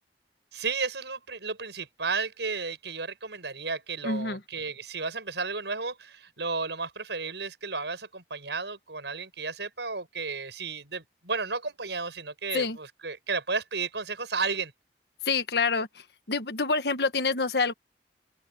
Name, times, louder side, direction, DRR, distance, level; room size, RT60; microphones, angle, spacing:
voice 1, 0.5-14.7, right 4 dB, 80° right, 6.0 m, -33 dB
voice 2, 4.0-4.4 12.5-12.8 15.2-15.9 16.3-17.7, left 4 dB, 65° left, 1.4 m, -26 dB
open air
head